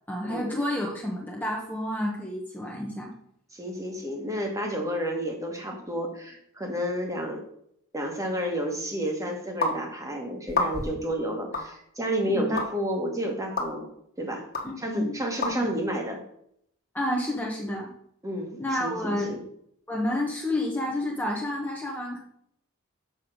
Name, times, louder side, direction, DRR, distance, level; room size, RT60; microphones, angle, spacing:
voice 1, 0.1-3.1 12.3-12.5 14.6-15.2 15.5-15.7 16.9-17.9 18.6-19.4 19.9-22.2, left 1 dB, 10° left, -1 dB, 1.0 m, -30 dB
voice 2, 3.5-7.4 7.9-13.9 14.2-14.4 14.8-16.2 18.2-19.4, equal, 15° right, 2 dB, 1.5 m, -31 dB
sound 1, 9.6-9.8 10.5-11.0 11.5-11.7 12.6-12.7 13.6-13.7 14.5-14.7 15.4-15.5, left 2 dB, 45° left, 1.5 m, -27 dB
6.9 x 5.6 x 6.3 m, 0.73 s
head